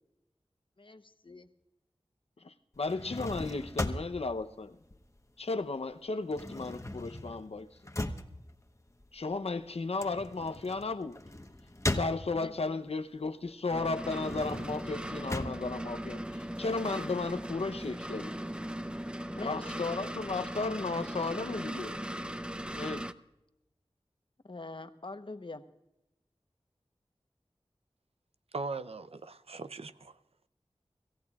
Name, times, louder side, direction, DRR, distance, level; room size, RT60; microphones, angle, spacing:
voice 1, 0.8-1.5 12.3-12.9 19.3-19.9 24.4-25.6, left 3 dB, 55° left, 1.0 m, -44 dB
voice 2, 2.4-4.8 5.4-7.7 9.1-11.2 11.9-18.3 19.4-22.0 22.8-23.0, left 3 dB, 80° left, 0.7 m, -34 dB
sound 1, 2.7-5.6 5.9-12.7 13.2-16.7, left 1 dB, 30° left, 1.1 m, -39 dB
sound 2, 13.7-23.1, equal, 10° right, 0.6 m, -39 dB
voice 3, 28.5-30.2, right 3 dB, 80° right, 0.6 m, -39 dB
26.5 x 15.0 x 2.4 m
wide cardioid pair, 45°, 10 cm